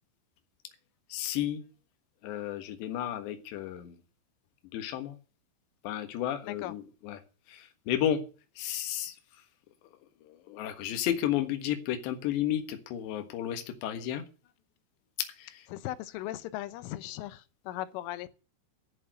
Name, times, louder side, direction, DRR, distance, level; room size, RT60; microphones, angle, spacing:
voice 1, 1.1-1.6 2.2-4.0 4.7-5.2 5.8-7.2 7.5-8.2 8.6-9.2 10.2-14.2 15.4-15.7, left 11 dB, 70° left, 3.5 m, -32 dB
voice 2, 15.7-18.3, left 14 dB, 85° left, 3.3 m, -38 dB
11.5 x 7.2 x 9.3 m
omnidirectional pair, 5.6 m